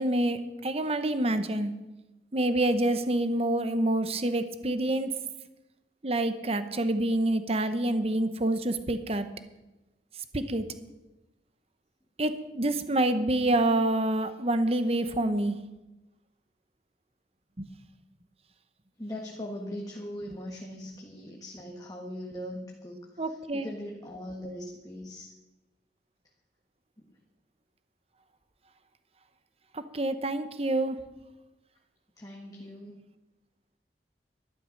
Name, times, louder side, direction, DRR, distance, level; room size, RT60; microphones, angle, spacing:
voice 1, 0.0-1.7 2.3-5.2 6.0-9.3 10.3-10.7 12.2-15.6 17.6-17.7 23.2-23.7 29.7-31.0, right 1 dB, 35° right, 11 dB, 1.0 m, -27 dB
voice 2, 19.0-25.3 27.0-27.2 32.2-33.0, left 1 dB, 20° left, 0 dB, 1.5 m, -40 dB
12.5 x 11.5 x 6.5 m, 1.0 s
head